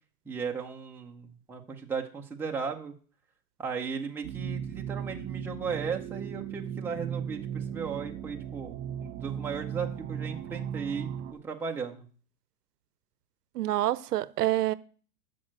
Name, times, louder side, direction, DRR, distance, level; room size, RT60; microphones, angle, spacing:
voice 1, 0.2-3.0 3.6-12.1, right 5 dB, 5° right, 0.7 m, -36 dB
sound 1, 4.2-11.3, right 9 dB, 50° right, 1.4 m, -37 dB
voice 2, 13.6-14.7, right 14 dB, 80° right, 0.7 m, -27 dB
6.4 x 6.4 x 7.5 m
hypercardioid pair, 145°, 46 cm